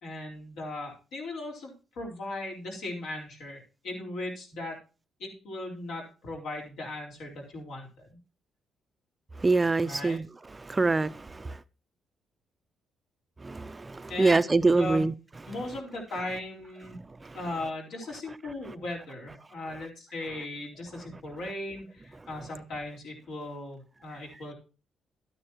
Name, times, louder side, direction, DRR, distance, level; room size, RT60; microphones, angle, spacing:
voice 1, 0.0-4.8 5.2-8.2 9.8-10.2 14.1-15.0 15.5-17.0 17.3-24.5, left 2 dB, 80° left, 4.1 m, -38 dB
voice 2, 9.4-10.2 10.7-11.5 13.4-15.1, right 3 dB, 20° right, 0.5 m, -24 dB
12.0 x 9.8 x 2.9 m
cardioid pair, 90°, 0 cm